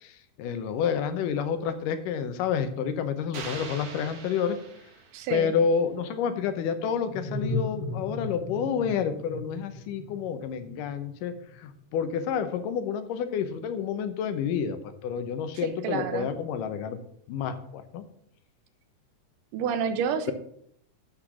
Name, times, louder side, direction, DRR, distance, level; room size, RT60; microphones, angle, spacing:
voice 1, 0.0-4.6 5.3-17.0 17.3-18.0, left 7 dB, 85° left, 10 dB, 2.4 m, -29 dB
sound 1, 3.3-5.5, right 5 dB, 60° right, 2.4 m, -42 dB
voice 2, 5.1-5.6 15.8-16.3 19.5-20.3, right 7 dB, 80° right, 10 dB, 2.4 m, -29 dB
sound 2, 6.2-11.6, left 2 dB, 15° left, 0.8 m, -36 dB
8.3 x 5.9 x 6.0 m, 0.70 s
omnidirectional pair, 3.7 m